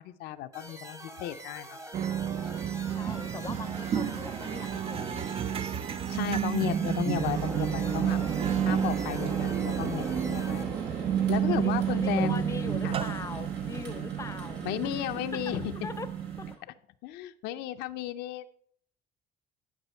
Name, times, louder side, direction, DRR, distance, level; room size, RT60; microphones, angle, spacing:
voice 1, 0.0-1.8 6.1-8.2 8.6-12.4 12.8-13.0 14.6-15.7 17.0-18.5, left 13 dB, 85° left, 0.5 m, -34 dB
sound 1, 0.5-10.6, right 1 dB, 20° right, 1.0 m, -45 dB
sound 2, 1.9-16.5, right 9 dB, 35° right, 0.3 m, -31 dB
voice 2, 2.9-5.3 6.5-6.9 11.5-14.9 15.3-15.4 15.8-16.1 16.4-16.5, left 4 dB, 20° left, 0.6 m, -41 dB
sound 3, 7.1-16.6, right 3 dB, 85° right, 2.4 m, -41 dB
11.0 x 5.5 x 4.4 m
cardioid pair, 110°, 17 cm